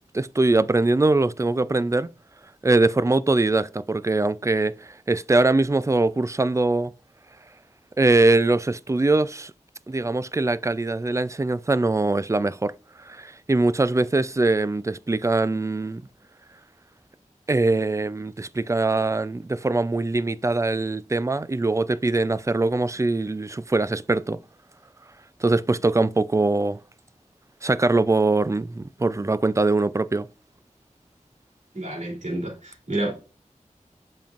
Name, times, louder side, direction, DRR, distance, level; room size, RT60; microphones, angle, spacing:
voice 1, 0.1-2.1 2.6-6.9 8.0-9.5 9.9-16.0 17.5-24.4 25.4-26.8 27.6-30.3, right 2 dB, 20° right, 0.4 m, -22 dB
voice 2, 31.7-33.1, right 1 dB, 65° right, 3.0 m, -29 dB
7.5 x 5.3 x 2.5 m
wide cardioid pair, 45°, 13 cm